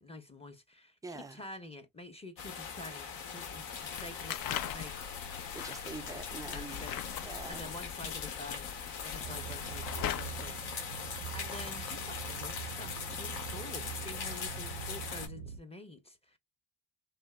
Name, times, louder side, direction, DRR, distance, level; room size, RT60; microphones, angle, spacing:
voice 1, 0.0-5.0 6.5-7.0 7.4-8.7 9.0-16.4, left 2 dB, 15° left, 0.7 m, -48 dB
voice 2, 1.0-1.4 5.5-6.9 7.2-7.6, right 3 dB, 10° right, 0.3 m, -45 dB
sound 1, 2.4-15.3, left 6 dB, 65° left, 1.0 m, -41 dB
sound 2, 3.8-10.5, left 10 dB, 50° left, 0.5 m, -41 dB
sound 3, 9.2-15.6, right 8 dB, 80° right, 0.6 m, -44 dB
2.7 x 2.1 x 2.2 m
hypercardioid pair, 50°, 45 cm